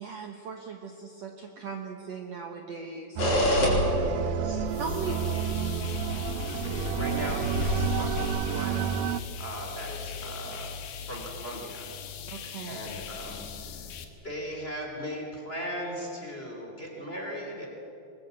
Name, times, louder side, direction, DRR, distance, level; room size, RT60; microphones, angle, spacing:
voice 1, 0.0-3.3 4.8-5.2 12.3-12.8, right 5 dB, 60° right, 3 dB, 1.9 m, -38 dB
sound 1, 3.2-8.3, left 1 dB, 65° left, 6.1 m, -29 dB
sound 2, 3.2-9.2, right 10 dB, 80° right, 2.3 m, -31 dB
voice 2, 3.7-4.7 5.0-5.5 6.4-9.1 9.4-10.7 11.0-11.9 12.7-13.9 14.2-17.7, equal, 15° left, 0 dB, 3.1 m, -38 dB
sound 3, 4.7-14.1, left 7 dB, 80° left, 3.3 m, -40 dB
23.0 x 21.5 x 8.1 m, 3.0 s
omnidirectional pair, 4.3 m